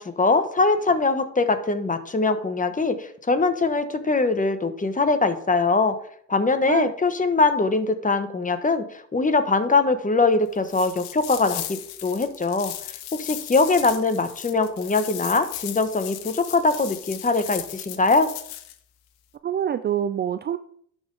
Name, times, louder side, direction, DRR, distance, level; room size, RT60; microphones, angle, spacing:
voice 1, 0.0-5.9 6.3-12.7 13.2-18.3, left 3 dB, 20° left, 10 dB, 1.1 m, -22 dB
sound 1, 10.6-18.7, left 13 dB, 75° left, 0.8 m, -36 dB
voice 2, 19.4-20.6, right 9 dB, 30° right, 11 dB, 0.4 m, -25 dB
11.5 x 3.8 x 3.9 m, 0.64 s
supercardioid pair, 65°, 38 cm